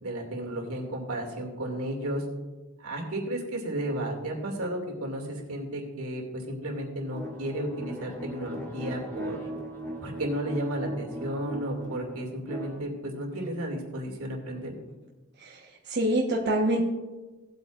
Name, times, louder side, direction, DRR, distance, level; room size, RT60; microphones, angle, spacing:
voice 1, 0.0-2.2 2.8-9.4 10.0-14.7, right 1 dB, 80° right, 0 dB, 2.4 m, -33 dB
sound 1, 7.1-12.8, right 1 dB, 10° left, 1.8 m, -38 dB
voice 2, 15.4-16.8, right 1 dB, 50° right, -2 dB, 1.1 m, -26 dB
17.5 x 8.2 x 2.5 m, 1.2 s
head